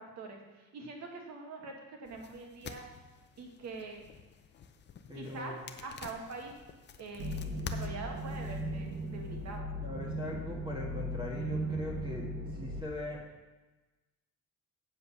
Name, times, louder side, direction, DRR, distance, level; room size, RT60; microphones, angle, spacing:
voice 1, 0.0-2.8 3.4-4.0 5.1-5.6 5.8-6.5 7.0-9.7, right 3 dB, 50° right, 2 dB, 1.7 m, -44 dB
sound 1, 2.1-9.6, left 6 dB, 30° left, 0.5 m, -50 dB
voice 2, 5.1-5.6 9.8-13.2, left 2 dB, 15° right, -3 dB, 1.5 m, -41 dB
sound 2, 7.2-12.8, right 1 dB, 35° right, 1.1 m, -37 dB
8.0 x 7.7 x 5.6 m, 1.2 s
cardioid pair, 175°, 34 cm